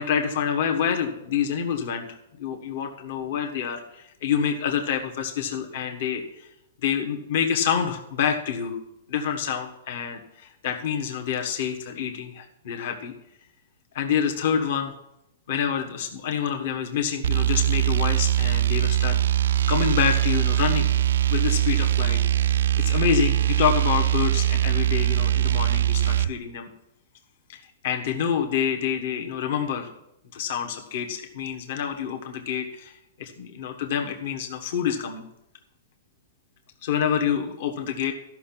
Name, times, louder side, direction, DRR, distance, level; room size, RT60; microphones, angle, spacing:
voice 1, 0.0-6.2 6.8-8.8 9.1-13.1 13.9-14.9 15.5-20.9 21.3-26.7 27.5-29.9 30.3-35.2 36.8-38.1, left 8 dB, 50° left, 5 dB, 1.4 m, -27 dB
sound 1, 17.2-26.3, right 12 dB, 80° right, 0.3 m, -22 dB
14.0 x 6.0 x 5.8 m, 0.83 s
hypercardioid pair, 165°, 0 cm